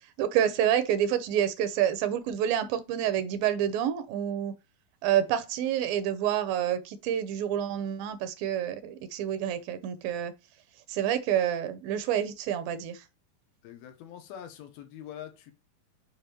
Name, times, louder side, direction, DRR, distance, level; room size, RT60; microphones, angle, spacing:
voice 1, 0.2-4.5 5.0-10.3 10.9-13.0, right 10 dB, 80° right, 2.4 m, -28 dB
voice 2, 13.6-15.5, left 10 dB, 85° left, 2.8 m, -44 dB
6.8 x 5.1 x 3.0 m
omnidirectional pair, 4.3 m